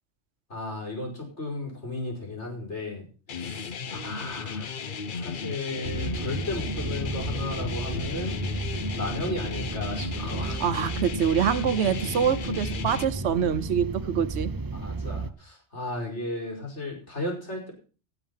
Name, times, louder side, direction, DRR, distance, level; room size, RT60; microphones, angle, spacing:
voice 1, 0.5-4.7 5.1-8.4 8.9-10.6 14.7-17.7, left 2 dB, 75° left, 0 dB, 5.3 m, -35 dB
sound 1, 3.3-13.0, left 5 dB, 50° left, 0.9 m, -35 dB
sound 2, 5.8-15.3, right 3 dB, 25° right, 0.5 m, -33 dB
voice 2, 10.6-14.5, right 8 dB, 70° right, 10 dB, 1.1 m, -25 dB
17.0 x 7.2 x 5.6 m, 0.36 s
omnidirectional pair, 1.2 m